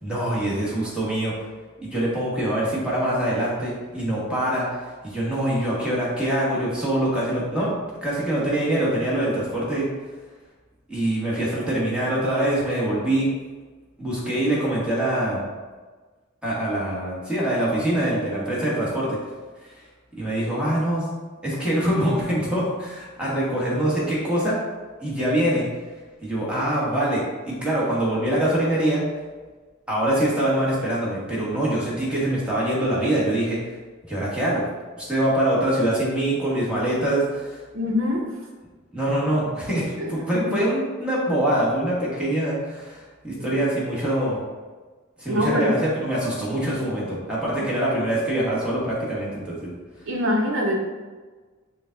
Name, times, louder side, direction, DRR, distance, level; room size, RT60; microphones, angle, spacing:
voice 1, 0.0-1.3 1.8-4.8 5.0-7.7 8.0-9.9 10.9-13.3 14.0-15.4 16.4-19.2 20.2-21.0 21.4-24.6 25.0-25.7 26.2-29.0 29.9-33.6 34.1-34.6 35.0-37.6 38.9-44.4 45.2-49.7, right 1 dB, 5° right, -7 dB, 1.2 m, -24 dB
voice 2, 37.7-38.3 40.0-40.6 43.4-43.5 45.3-45.7 50.1-50.8, left 1 dB, 65° right, -1 dB, 0.9 m, -24 dB
5.0 x 2.3 x 3.9 m, 1.3 s
head